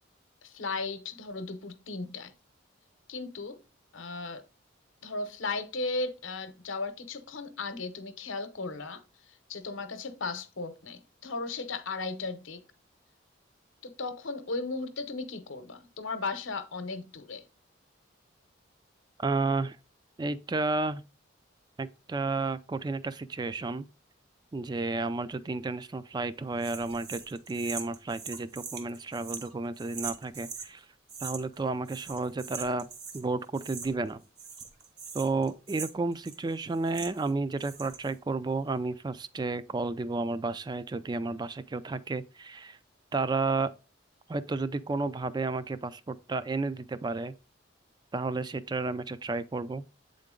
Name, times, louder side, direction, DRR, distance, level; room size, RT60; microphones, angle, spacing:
voice 1, 0.4-2.3 3.1-3.6 3.9-4.4 5.0-12.6 13.8-17.5, left 3 dB, 75° left, 0.8 m, -36 dB
voice 2, 19.2-19.8 20.2-21.0 21.8-23.9 24.5-30.9 31.2-32.9 33.1-34.2 35.1-42.8 43.1-43.7 44.3-47.3 48.1-49.8, right 3 dB, 20° right, 0.3 m, -32 dB
sound 1, 26.6-30.7 31.1-31.6 31.8-33.2 33.5-34.1 34.4-37.3 37.6-38.1, right 6 dB, 55° right, 1.2 m, -42 dB
8.2 x 3.8 x 3.7 m
head